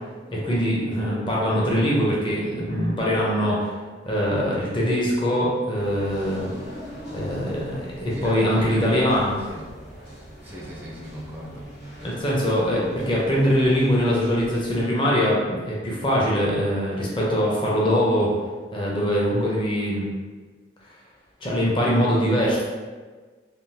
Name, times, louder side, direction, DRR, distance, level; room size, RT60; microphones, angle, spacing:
voice 1, 0.3-3.7 4.0-6.5 7.1-9.3 12.0-18.3 18.7-20.1 21.4-22.6, equal, 25° left, -5 dB, 0.6 m, -22 dB
sound 1, 5.7-14.8, equal, 60° left, 1.0 m, -42 dB
voice 2, 8.1-9.2 9.5-9.7 10.4-11.7, equal, 10° right, -4 dB, 0.4 m, -38 dB
3.6 x 2.3 x 2.7 m, 1.4 s
head